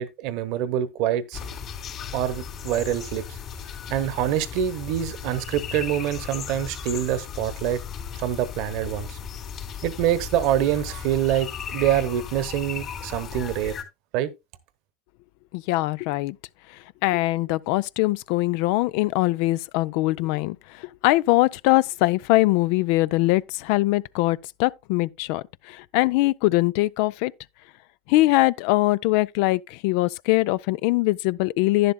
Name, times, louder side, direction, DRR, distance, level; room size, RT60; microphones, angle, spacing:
voice 1, 0.0-1.4 2.1-3.2 3.9-7.8 8.2-9.2 9.8-13.7 14.1-14.3, right 11 dB, 65° right, 1.0 m, -25 dB
sound 1, 1.3-13.8, left 7 dB, 45° left, 3.4 m, -36 dB
voice 2, 15.5-16.4 17.0-27.3 28.1-31.9, left 19 dB, 70° left, 0.4 m, -22 dB
11.0 x 10.5 x 2.2 m
hypercardioid pair, 90°, 0 cm